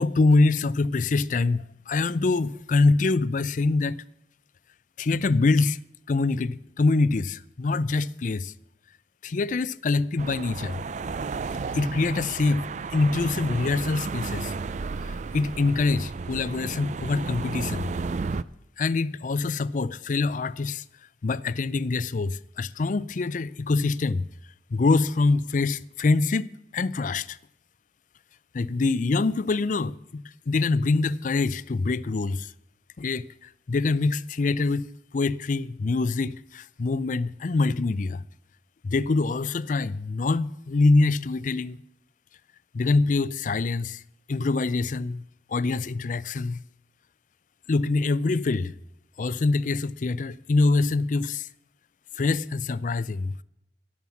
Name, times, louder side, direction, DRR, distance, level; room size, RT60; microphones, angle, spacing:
voice 1, 0.0-4.0 5.0-5.8 6.1-8.5 9.2-10.8 11.7-14.5 15.0-17.9 18.8-20.8 21.2-24.3 24.7-26.5 26.7-27.4 28.5-32.5 33.0-38.2 38.8-41.8 42.7-44.0 44.3-45.2 45.5-46.6 47.7-48.7 49.2-51.5 52.2-53.4, left 3 dB, 45° left, 0.4 m, -25 dB
sound 1, 10.2-18.4, right 4 dB, 40° right, 0.4 m, -33 dB
17.0 x 7.2 x 7.1 m
head